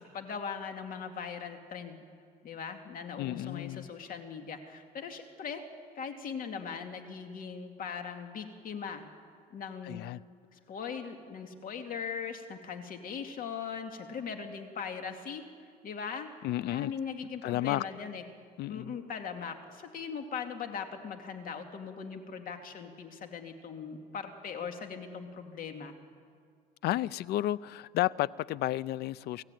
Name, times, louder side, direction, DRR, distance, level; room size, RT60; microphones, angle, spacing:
voice 1, 0.0-2.0 2.4-5.6 5.9-9.0 9.5-10.0 10.5-15.5 15.8-16.3 16.6-18.2 18.7-25.9, left 6 dB, 55° left, 2.5 m, -40 dB
voice 2, 3.2-3.9 9.8-10.2 16.4-16.9 17.4-17.8 18.6-18.9 26.8-29.4, left 15 dB, 75° left, 0.5 m, -32 dB
29.0 x 15.0 x 9.2 m
cardioid pair, 110°, 17 cm